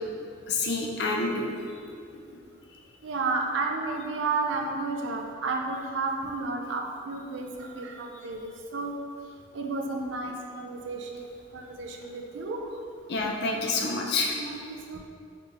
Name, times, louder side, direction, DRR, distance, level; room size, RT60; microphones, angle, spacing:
voice 1, 0.5-1.5 13.1-14.4, left 3 dB, 60° left, 0 dB, 0.5 m, -28 dB
voice 2, 3.0-8.9 9.5-11.3 11.5-12.7 14.4-15.0, right 3 dB, 85° right, 2 dB, 0.5 m, -32 dB
3.9 x 3.2 x 3.4 m, 2.4 s
head